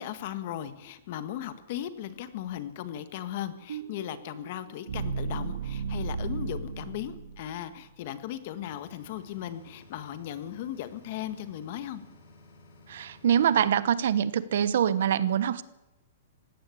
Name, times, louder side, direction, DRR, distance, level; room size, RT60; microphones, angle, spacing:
voice 1, 0.0-12.0, left 11 dB, 40° left, 12 dB, 1.6 m, -37 dB
sound 1, 3.7-7.8, right 4 dB, 85° right, 2.0 m, -35 dB
sound 2, 8.6-13.7, left 2 dB, 60° left, 7.7 m, -55 dB
voice 2, 12.9-15.6, right 9 dB, 60° right, 17 dB, 1.1 m, -24 dB
19.0 x 16.5 x 8.5 m, 0.93 s
hypercardioid pair, 175°, 0 cm